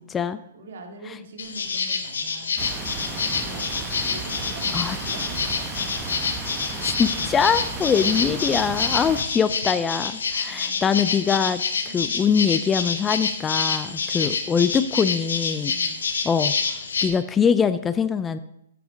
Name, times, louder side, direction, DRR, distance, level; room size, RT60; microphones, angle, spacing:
voice 1, 0.0-0.4 4.7-5.0 6.8-11.6 11.9-15.7 16.2-16.5 17.0-18.4, left 6 dB, 15° left, 13 dB, 0.4 m, -23 dB
voice 2, 0.5-3.8 4.1-5.9 7.2-7.3 7.6-8.1 9.3-9.5 10.5-11.1 11.8-12.1 13.8-14.3 15.6-16.0, right 1 dB, 65° right, 3 dB, 2.1 m, -44 dB
sound 1, 1.4-17.1, left 5 dB, 85° left, 1.3 m, -27 dB
sound 2, 2.6-9.2, right 4 dB, 20° right, 1.0 m, -34 dB
8.7 x 5.9 x 6.3 m, 0.80 s
hypercardioid pair, 135°, 0 cm